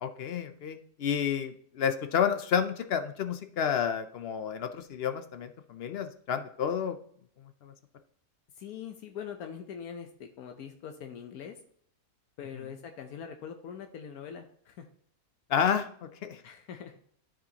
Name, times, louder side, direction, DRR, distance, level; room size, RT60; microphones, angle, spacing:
voice 1, 0.0-7.0 7.6-7.7 15.5-16.4, left 8 dB, 65° left, 9 dB, 0.6 m, -30 dB
voice 2, 8.6-11.6 12.4-14.9 16.4-17.0, left 7 dB, 85° left, 5 dB, 1.2 m, -43 dB
12.0 x 5.0 x 2.8 m, 0.62 s
omnidirectional pair, 1.5 m